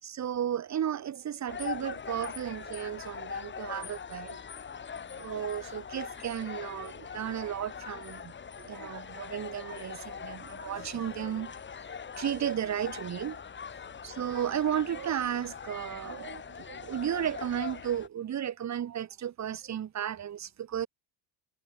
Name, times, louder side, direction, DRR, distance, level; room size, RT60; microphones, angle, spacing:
voice 1, 0.0-4.4 5.2-11.5 12.2-13.4 14.0-20.9, right 10 dB, 35° right, 5.4 m, -34 dB
sound 1, 1.5-18.1, left 6 dB, 25° left, 6.1 m, -42 dB
cardioid pair, 180°, 47 cm